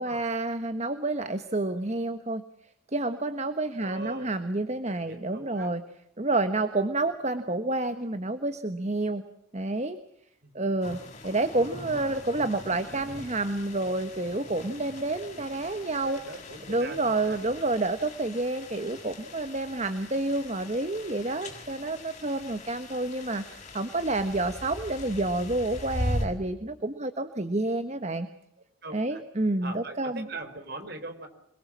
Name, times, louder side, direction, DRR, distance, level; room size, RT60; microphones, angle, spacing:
voice 1, 0.0-2.4 2.9-5.8 6.2-9.2 9.5-10.0 10.5-16.2 16.7-28.3 28.9-30.3, right 2 dB, 30° right, 10 dB, 1.3 m, -29 dB
voice 2, 3.8-4.3 4.7-5.7 10.4-10.6 11.6-11.8 15.8-17.4 22.4-22.6 28.8-29.2 29.6-31.3, right 2 dB, 50° right, 8 dB, 4.6 m, -41 dB
sound 1, 10.8-26.3, left 1 dB, 35° left, 6.9 m, -40 dB
28.0 x 22.0 x 7.5 m, 0.74 s
head